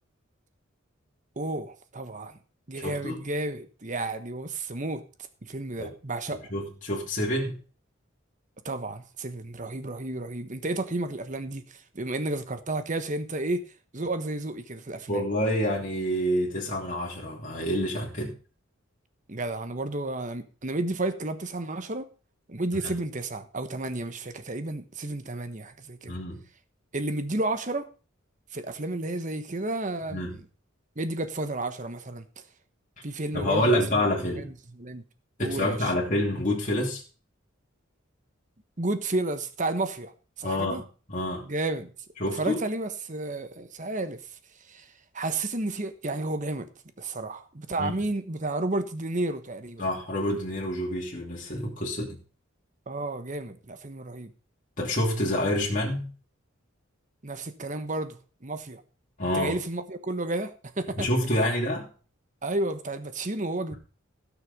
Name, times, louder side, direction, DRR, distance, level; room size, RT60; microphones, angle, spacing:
voice 1, 1.4-2.4 2.7-5.0 5.4-6.4 8.6-15.2 19.3-22.1 22.5-26.2 26.9-27.9 28.5-30.4 31.0-32.2 33.0-34.1 34.4-34.5 34.8-35.0 35.4-35.9 38.8-40.8 41.4-41.9 42.3-46.7 47.0-49.8 52.9-54.3 57.2-58.8 59.2-61.1 61.4-61.5 62.4-63.7, right 2 dB, 40° right, 1.3 m, -32 dB
voice 2, 2.7-3.2 5.8-5.9 6.5-7.6 15.1-18.3 22.8-22.9 26.1-26.4 30.1-30.4 33.3-34.5 35.4-37.0 40.4-40.8 41.1-41.5 42.2-42.6 47.8-47.9 49.8-52.2 54.8-56.1 59.2-59.6 61.0-61.9, left 1 dB, 40° left, 2.9 m, -27 dB
16.5 x 6.4 x 5.4 m
head